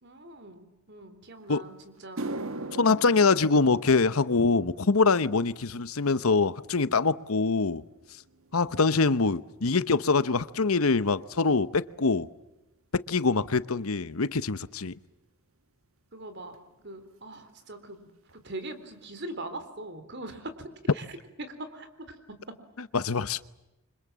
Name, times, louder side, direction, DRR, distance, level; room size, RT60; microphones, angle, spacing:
voice 1, 0.0-2.3 16.1-20.5 20.9-22.2 22.5-22.6, right 2 dB, 55° right, 3.9 m, -42 dB
sound 1, 1.4-1.5 2.0-10.5 10.8-11.2 11.9-12.0 14.8-14.9 16.5-16.6 16.8-17.1 17.3-17.9 18.3-18.4 18.9-19.0, right 2 dB, 70° right, 1.5 m, -43 dB
voice 2, 2.7-7.8 8.5-12.3 12.9-15.0 22.9-23.4, left 4 dB, 80° left, 1.0 m, -24 dB
28.5 x 25.5 x 7.5 m
head